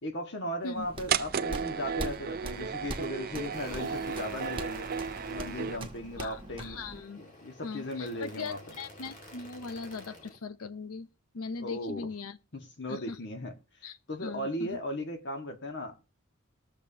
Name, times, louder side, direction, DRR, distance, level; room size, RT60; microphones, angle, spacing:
voice 1, 0.0-4.9 5.3-6.8 7.2-8.6 11.6-12.1 12.5-13.5 14.1-16.0, left 1 dB, 55° left, 1.7 m, -37 dB
sound 1, 0.8-7.0, right 2 dB, 25° right, 1.1 m, -43 dB
sound 2, 1.1-5.8, right 6 dB, 45° right, 0.5 m, -34 dB
sound 3, 3.5-10.4, left 1 dB, 40° left, 2.1 m, -50 dB
voice 2, 6.2-7.2 7.6-11.1 11.3-12.4 12.9-13.2 13.8-14.8, left 4 dB, 80° left, 0.7 m, -40 dB
20.5 x 7.1 x 2.8 m
head